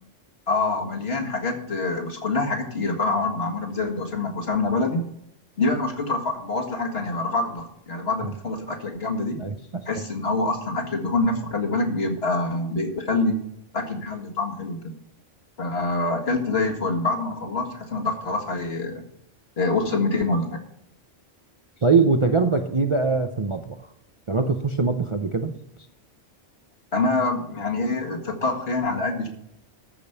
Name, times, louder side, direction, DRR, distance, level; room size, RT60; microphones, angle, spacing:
voice 1, 0.5-5.0 5.6-9.4 9.9-13.4 13.7-15.0 15.6-19.0 19.6-20.6 26.9-29.3, left 3 dB, 55° left, 1 dB, 2.1 m, -25 dB
voice 2, 9.4-9.8 21.8-23.8 24.3-25.5, right 4 dB, 35° right, 6 dB, 0.6 m, -22 dB
14.0 x 5.2 x 6.8 m, 0.73 s
omnidirectional pair, 1.2 m